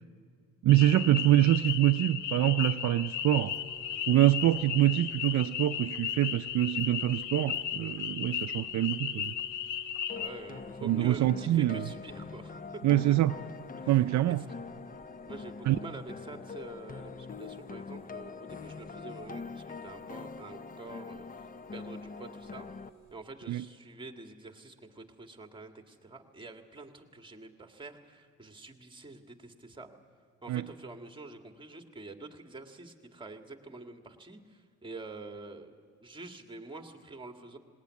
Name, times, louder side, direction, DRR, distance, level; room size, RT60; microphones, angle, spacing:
voice 1, 0.6-3.5 4.1-9.3 10.8-11.8 12.8-13.4 13.9-14.4 15.7-15.8 23.5-23.6 30.5-30.6, right 14 dB, 65° right, 10 dB, 0.5 m, -25 dB
sound 1, 0.7-10.3, left 9 dB, 85° left, 1.0 m, -35 dB
sound 2, 3.3-23.1, right 9 dB, 10° left, 6.3 m, -58 dB
sound 3, 10.1-22.9, left 5 dB, 30° left, 0.6 m, -43 dB
voice 2, 10.1-12.8 13.1-13.2 13.8-14.3 15.3-22.7 23.1-29.9 30.4-35.7 36.0-37.6, right 3 dB, 15° right, 5 dB, 1.8 m, -47 dB
19.0 x 18.5 x 9.5 m, 2.2 s
cardioid pair, 90°, 30 cm